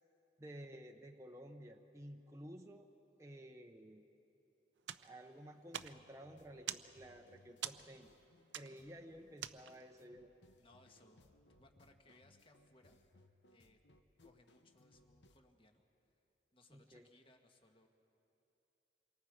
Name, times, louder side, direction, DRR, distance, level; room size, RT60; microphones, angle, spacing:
voice 1, 0.4-2.9 3.2-4.1 5.0-8.1 8.5-10.3 16.7-17.1, equal, 15° right, 2 dB, 0.7 m, -53 dB
sound 1, 4.8-10.0, right 10 dB, 85° right, 0.6 m, -48 dB
sound 2, 5.8-15.4, left 1 dB, 80° left, 1.0 m, -68 dB
voice 2, 10.6-11.3 11.6-13.1 13.5-13.8 14.2-15.8 16.5-17.9, left 2 dB, 30° left, 4 dB, 1.5 m, -67 dB
27.5 x 23.0 x 5.0 m, 2.9 s
head